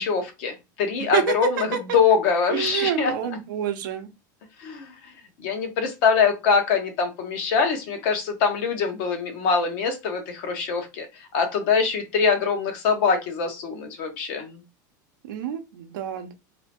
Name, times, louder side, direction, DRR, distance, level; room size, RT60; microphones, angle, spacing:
voice 1, 0.0-3.1 4.6-5.1 5.4-14.6, left 5 dB, 60° left, 0.9 m, -23 dB
voice 2, 2.5-4.1 15.3-16.3, right 11 dB, 85° right, 0.6 m, -28 dB
2.7 x 2.1 x 2.8 m
supercardioid pair, 130°, 10 cm